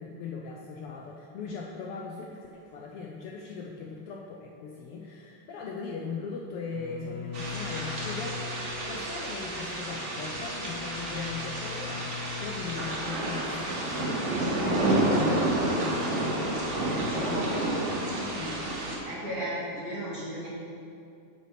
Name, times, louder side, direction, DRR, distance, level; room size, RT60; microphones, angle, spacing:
voice 1, 0.0-8.4 8.9-18.7, left 5 dB, 90° left, -1 dB, 1.3 m, -39 dB
Bowed string instrument, 6.7-13.0, left 5 dB, 70° left, 1.0 m, -41 dB
sound 1, 7.3-19.0, right 1 dB, 80° right, 0.6 m, -30 dB
voice 2, 19.0-20.5, equal, 35° right, -8 dB, 2.3 m, -34 dB
7.2 x 7.2 x 5.8 m, 2.5 s
omnidirectional pair, 3.3 m